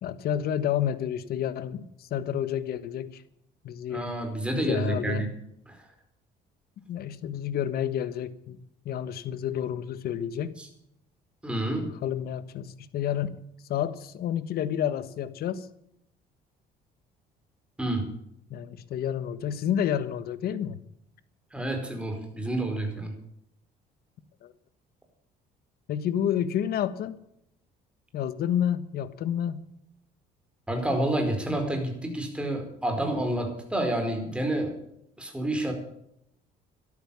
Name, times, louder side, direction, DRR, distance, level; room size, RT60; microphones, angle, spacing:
voice 1, 0.0-3.2 3.6-4.1 4.5-5.2 6.9-10.5 12.0-13.3 13.7-15.7 18.5-20.8 24.4-24.5 25.9-27.2 28.1-29.6, left 10 dB, 65° left, 14 dB, 1.4 m, -30 dB
voice 2, 3.9-5.3 5.7-5.8 10.6-10.7 11.4-12.0 17.8-18.1 21.5-23.1 30.7-34.7 35.2-35.7, right 1 dB, 5° right, 4 dB, 4.8 m, -29 dB
13.5 x 12.5 x 7.1 m, 0.75 s
cardioid pair, 110°, 17 cm